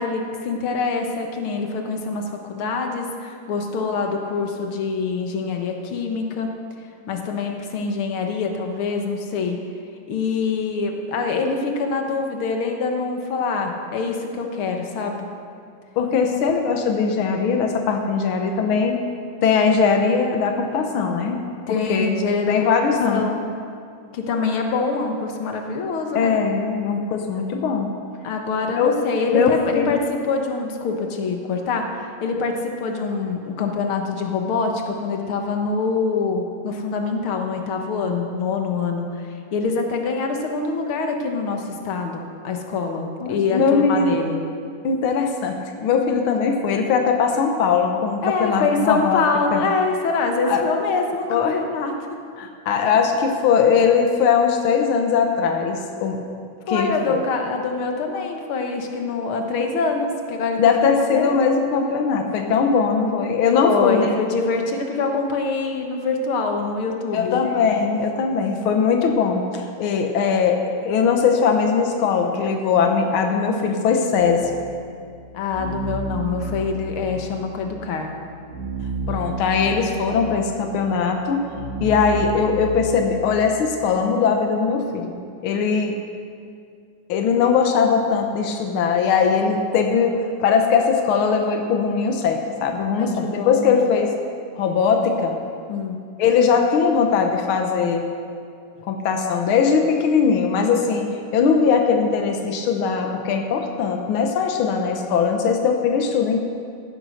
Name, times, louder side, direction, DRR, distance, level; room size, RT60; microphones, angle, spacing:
voice 1, 0.0-6.5 7.1-9.6 10.1-15.3 21.7-22.5 23.1-23.4 24.1-26.3 28.2-44.4 48.2-51.9 56.7-61.3 63.5-67.5 75.3-78.1 93.0-93.8 95.7-96.0, left 4 dB, 55° left, 3 dB, 1.6 m, -25 dB
voice 2, 16.0-19.0 19.4-21.4 21.9-22.1 22.5-23.3 26.1-27.9 28.7-28.9 29.3-30.0 43.2-44.2 44.8-49.2 49.5-49.6 50.4-50.6 51.3-51.6 52.4-56.2 56.7-57.2 60.6-64.1 67.1-74.5 79.1-81.5 81.8-85.1 85.4-85.9 87.1-94.1 94.6-95.4 96.2-98.1 98.8-101.0 101.3-106.4, left 6 dB, 80° left, 3 dB, 1.1 m, -20 dB
sound 1, 74.2-83.3, right 2 dB, 75° right, 3.5 m, -32 dB
15.5 x 9.8 x 6.5 m, 2.3 s
omnidirectional pair, 3.8 m